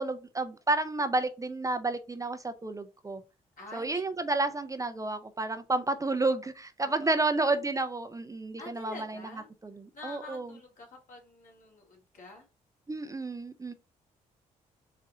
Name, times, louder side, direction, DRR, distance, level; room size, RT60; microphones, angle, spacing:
voice 1, 0.0-3.2 3.7-9.2 10.0-10.5 12.9-13.7, right 2 dB, 20° right, 0.5 m, -30 dB
voice 2, 3.6-4.0 6.8-7.3 8.6-9.5 9.9-12.5, left 2 dB, 55° left, 1.9 m, -47 dB
4.2 x 2.4 x 3.8 m
supercardioid pair, 55°, 16 cm